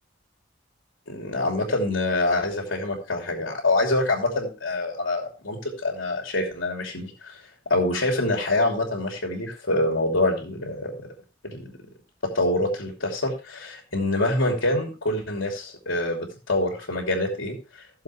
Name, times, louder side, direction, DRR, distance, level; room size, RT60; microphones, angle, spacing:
voice 1, 1.1-7.4 7.7-11.1 11.5-11.7 12.3-18.0, left 2 dB, 90° left, 2 dB, 2.9 m, -26 dB
16.5 x 7.2 x 3.1 m, 0.34 s
head